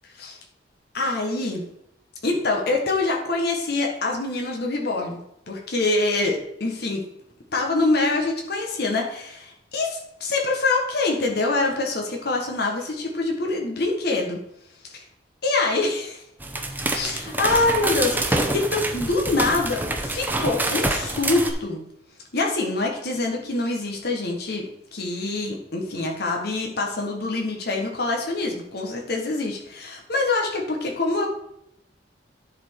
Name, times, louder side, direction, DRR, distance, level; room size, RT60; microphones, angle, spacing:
voice 1, 0.9-1.6 2.2-5.2 5.5-7.0 7.5-14.4 14.9-15.0 15.4-16.2 16.9-21.8 22.3-24.7 24.9-31.3, left 3 dB, 60° left, 1 dB, 1.4 m, -25 dB
sound 1, 16.4-21.5, right 2 dB, 10° right, 0.7 m, -26 dB
10.5 x 4.4 x 4.7 m, 0.76 s
head